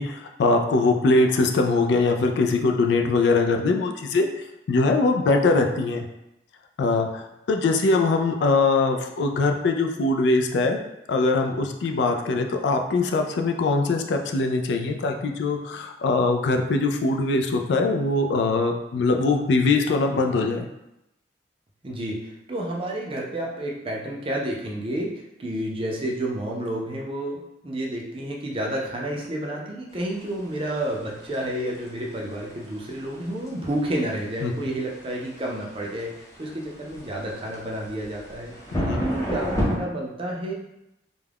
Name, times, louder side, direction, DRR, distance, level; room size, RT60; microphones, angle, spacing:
voice 1, 0.0-6.0 6.8-10.8 11.1-20.7 34.4-34.5 38.8-39.1, left 3 dB, 70° left, 4 dB, 0.3 m, -22 dB
voice 2, 21.8-36.1 36.4-40.5, right 1 dB, 30° right, -2 dB, 0.5 m, -30 dB
sound 1, 30.0-39.8, equal, 20° left, 0.5 m, -33 dB
2.3 x 2.1 x 3.3 m, 0.87 s
head